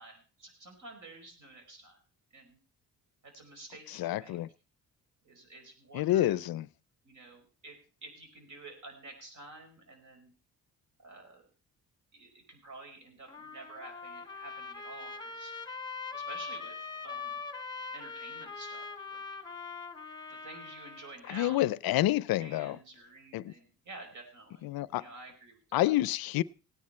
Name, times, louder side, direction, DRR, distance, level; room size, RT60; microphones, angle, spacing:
voice 1, 0.0-2.0 2.3-2.6 3.2-4.4 5.2-6.4 7.0-10.3 11.0-11.4 12.1-15.5 16.1-17.4 17.9-19.2 20.3-22.0 22.4-24.7 25.0-25.9, right 2 dB, 55° right, 5.1 m, -50 dB
voice 2, 3.9-4.5 5.9-6.7 21.3-22.8 23.3-23.5 24.6-25.0 25.7-26.4, left 15 dB, 80° left, 0.5 m, -28 dB
Trumpet, 13.3-21.2, left 5 dB, 10° left, 1.3 m, -42 dB
17.5 x 9.7 x 4.4 m
cardioid pair, 130°, 35 cm